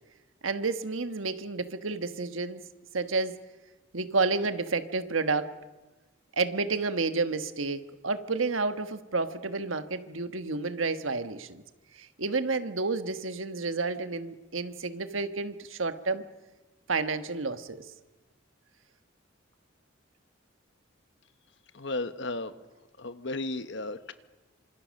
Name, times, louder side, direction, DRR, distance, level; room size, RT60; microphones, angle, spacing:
voice 1, 0.4-2.6 2.9-3.4 3.9-5.5 6.3-11.6 11.9-16.2 16.9-17.8, right 3 dB, 90° right, 9 dB, 1.5 m, -30 dB
voice 2, 21.7-22.5 23.0-24.1, left 2 dB, 65° left, 11 dB, 1.2 m, -34 dB
27.5 x 26.0 x 6.6 m, 1.2 s
head